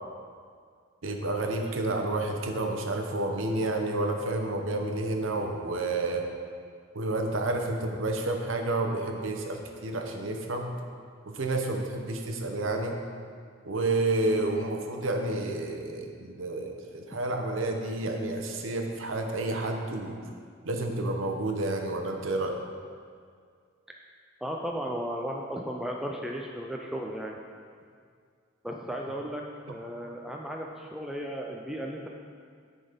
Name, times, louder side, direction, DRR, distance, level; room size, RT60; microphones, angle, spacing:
voice 1, 1.0-6.2 6.9-10.8 11.3-13.0 13.7-20.2 20.6-22.6, right 2 dB, 80° right, 3 dB, 0.8 m, -30 dB
voice 2, 24.4-27.4 28.6-32.1, equal, ahead, -1 dB, 0.4 m, -35 dB
9.6 x 4.1 x 5.1 m, 2.1 s
head